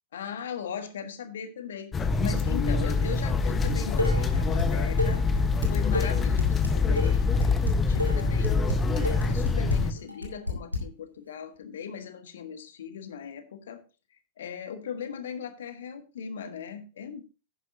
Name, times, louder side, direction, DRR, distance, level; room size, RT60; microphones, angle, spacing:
voice 1, 0.1-5.2 5.7-8.6 9.0-13.8 14.4-17.2, left 7 dB, 60° left, 9 dB, 1.5 m, -38 dB
sound 1, 1.9-9.9, left 4 dB, 20° left, 1.1 m, -25 dB
Dishes pots and pans, 3.6-4.7 5.0-10.8, left 2 dB, 90° left, 2.1 m, -30 dB
11.0 x 10.5 x 2.7 m, 0.32 s
figure-of-eight pair, 90°, 0 cm